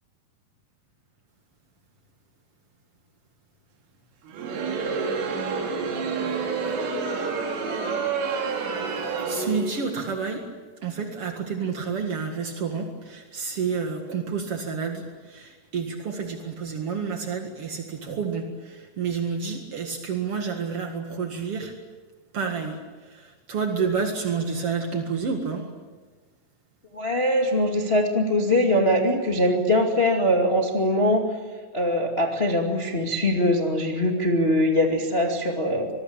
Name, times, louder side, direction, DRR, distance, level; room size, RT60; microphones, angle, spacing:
Crowd, 4.3-10.0, right 4 dB, 80° right, 5.7 m, -28 dB
voice 1, 8.8-10.4 10.8-21.7 22.3-25.7, right 5 dB, 60° right, 3 dB, 1.5 m, -29 dB
voice 2, 26.9-31.2 31.7-35.9, left 1 dB, 60° left, 1 dB, 0.6 m, -22 dB
26.0 x 21.5 x 8.7 m, 1.4 s
omnidirectional pair, 5.7 m